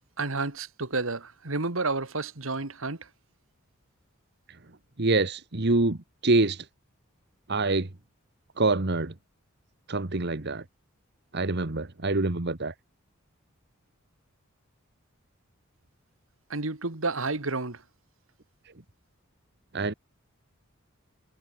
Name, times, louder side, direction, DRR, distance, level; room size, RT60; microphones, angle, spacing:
voice 1, 0.2-3.1 16.5-17.8, right 3 dB, 70° right, 2.0 m, -30 dB
voice 2, 5.0-6.0 6.2-6.6 7.5-7.9 8.6-9.1 9.9-10.6 11.3-12.7 19.7-19.9, right 2 dB, 55° right, 1.4 m, -25 dB
head